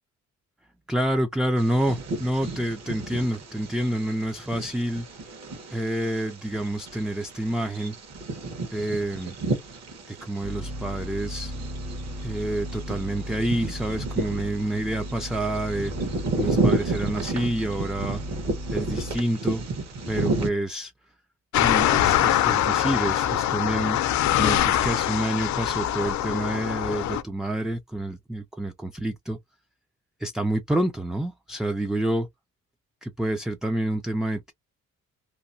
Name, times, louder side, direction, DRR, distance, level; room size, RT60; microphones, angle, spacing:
voice 1, 0.9-5.1 5.7-8.0 8.7-9.3 10.1-11.5 12.2-18.2 18.7-19.6 20.1-20.9 21.6-24.0 24.4-29.4 30.2-32.3 33.0-34.5, right 1 dB, ahead, 0.3 m, -28 dB
Bird vocalization bird call bird song, 1.6-20.5, right 2 dB, 60° right, 1.3 m, -32 dB
sound 1, 10.4-19.2, equal, 85° right, 1.1 m, -36 dB
sound 2, 21.5-27.2, left 11 dB, 70° left, 0.6 m, -23 dB
2.8 x 2.2 x 2.6 m
cardioid pair, 90°, 30 cm